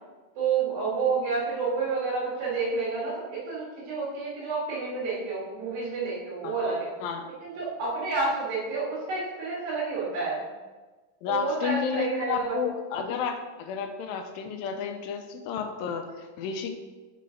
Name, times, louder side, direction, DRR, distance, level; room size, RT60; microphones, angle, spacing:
voice 1, 0.4-6.9 7.4-10.4 11.3-12.6, right 4 dB, 75° right, -9 dB, 3.2 m, -29 dB
voice 2, 6.4-7.2 11.2-16.7, left 7 dB, 85° left, 5 dB, 2.3 m, -32 dB
6.5 x 3.9 x 4.9 m, 1.3 s
omnidirectional pair, 4.1 m